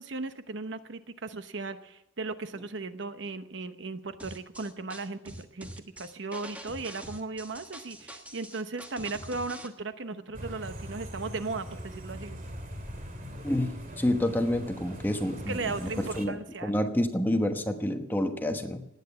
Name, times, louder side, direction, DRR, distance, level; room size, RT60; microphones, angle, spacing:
voice 1, 0.0-12.4 15.5-16.7, right 3 dB, 65° right, 11 dB, 0.9 m, -37 dB
sound 1, 4.2-9.7, right 1 dB, 5° right, 1.3 m, -44 dB
sound 2, 10.3-16.3, equal, 45° right, 2.4 m, -41 dB
voice 2, 13.4-18.9, left 1 dB, 10° left, 5 dB, 1.2 m, -29 dB
18.5 x 9.2 x 7.0 m, 0.88 s
head